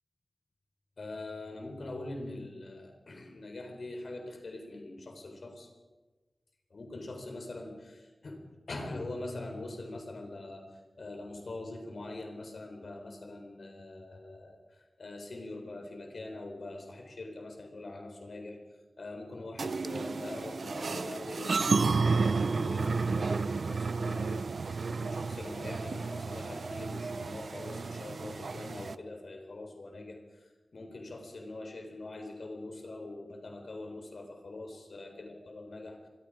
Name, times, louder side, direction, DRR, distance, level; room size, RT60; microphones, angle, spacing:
voice 1, 1.0-5.7 6.7-10.7 11.0-18.6 19.0-30.4 30.7-36.1, left 2 dB, 70° left, 4 dB, 4.1 m, -43 dB
sound 1, 19.6-29.0, right 4 dB, 70° right, 0.7 m, -32 dB
26.0 x 23.0 x 5.0 m, 1.2 s
wide cardioid pair, 100°, 0 cm